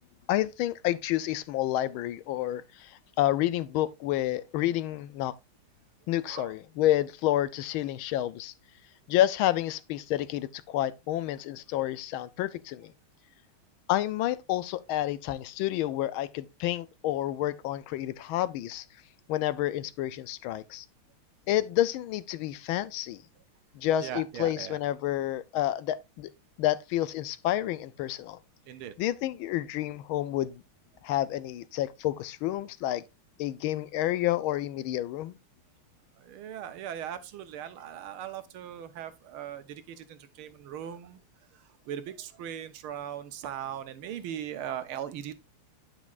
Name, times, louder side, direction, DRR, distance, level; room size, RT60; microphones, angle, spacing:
voice 1, 0.3-5.3 6.1-8.5 9.1-12.9 13.9-18.8 19.3-20.9 21.5-23.2 23.7-26.3 26.6-28.4 29.0-30.6 31.0-33.0 33.4-35.4, left 13 dB, 80° left, 1.4 m, -29 dB
voice 2, 24.0-24.8 28.7-28.9 36.2-41.2 41.5-45.3, right 10 dB, 80° right, 1.7 m, -39 dB
10.5 x 6.0 x 2.4 m
omnidirectional pair, 2.3 m